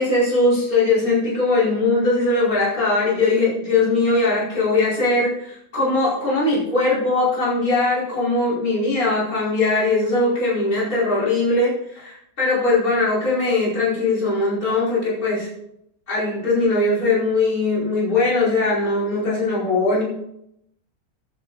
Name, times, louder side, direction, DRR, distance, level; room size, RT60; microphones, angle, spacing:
voice 1, 0.0-15.5 16.1-20.0, left 2 dB, 55° left, -8 dB, 5.3 m, -20 dB
13.0 x 9.4 x 4.0 m, 0.78 s
omnidirectional pair, 1.8 m